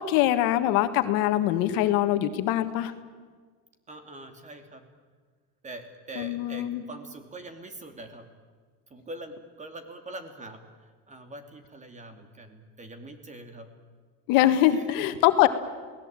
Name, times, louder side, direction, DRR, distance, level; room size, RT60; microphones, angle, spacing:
voice 1, 0.0-2.9 6.2-6.8 14.3-15.5, left 13 dB, 70° left, 9 dB, 1.8 m, -23 dB
voice 2, 3.9-4.8 5.6-8.3 8.9-10.6 11.1-13.7 14.7-14.8, right 2 dB, 20° right, 7 dB, 2.8 m, -43 dB
28.5 x 18.5 x 9.0 m, 1.5 s
cardioid pair, 135°, 35 cm